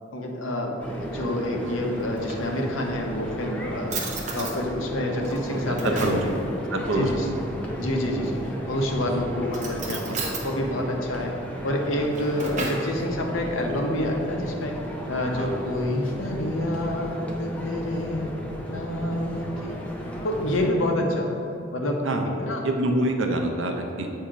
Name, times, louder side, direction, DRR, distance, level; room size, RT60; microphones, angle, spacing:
voice 1, 0.1-4.0 4.3-6.3 6.9-7.3 7.8-10.0 10.4-11.3 11.6-14.8 15.1-18.3 18.7-19.8 20.2-21.4 21.7-22.1 22.4-22.6, left 1 dB, 85° left, 1 dB, 0.8 m, -28 dB
sound 1, 0.8-20.7, equal, 5° left, 0.5 m, -35 dB
Drawer open or close, 2.0-3.0 3.5-3.6 3.9-4.6 5.2-6.3 8.2-8.7 9.5-10.5 11.9-12.9, right 3 dB, 35° right, 0.8 m, -34 dB
voice 2, 5.8-6.2 6.7-7.4 9.8-10.2 15.3-15.6 22.0-22.3 22.6-24.1, right 1 dB, 75° right, 3 dB, 0.6 m, -26 dB
7.3 x 2.8 x 4.9 m, 2.8 s
head